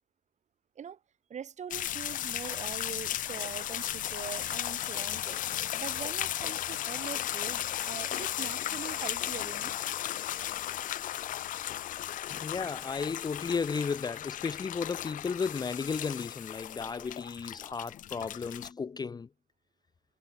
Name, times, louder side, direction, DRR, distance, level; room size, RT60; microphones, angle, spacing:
voice 1, 1.3-5.4 5.7-9.8, right 8 dB, 40° right, 4.1 m, -42 dB
sound 1, 1.7-18.7, left 12 dB, 45° left, 0.4 m, -35 dB
voice 2, 12.3-19.3, left 5 dB, 20° left, 0.8 m, -34 dB
cardioid pair, 145°, 18 cm